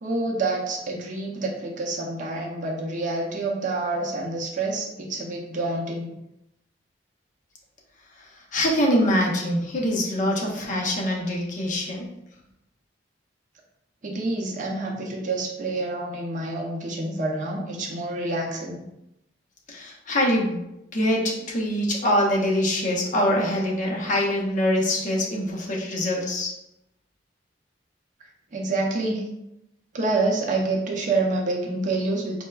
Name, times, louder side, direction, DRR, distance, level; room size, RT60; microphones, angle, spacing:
voice 1, 0.0-6.1 14.0-18.8 28.2-29.2 29.9-32.5, right 2 dB, 45° right, -2 dB, 0.6 m, -27 dB
voice 2, 8.5-12.0 19.7-20.6 20.9-26.5, left 1 dB, 45° left, -1 dB, 0.7 m, -24 dB
4.4 x 2.1 x 2.3 m, 0.87 s
head